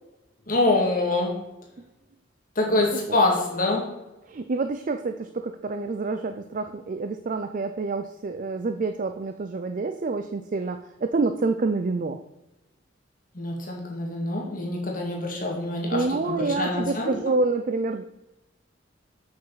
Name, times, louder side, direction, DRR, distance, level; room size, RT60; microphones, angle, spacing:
voice 1, 0.5-1.3 2.6-3.9 13.3-17.1, left 2 dB, 45° left, -1 dB, 2.2 m, -25 dB
voice 2, 4.3-12.2 15.9-18.0, right 3 dB, 45° right, 8 dB, 0.4 m, -27 dB
7.3 x 6.1 x 5.7 m, 1.0 s
head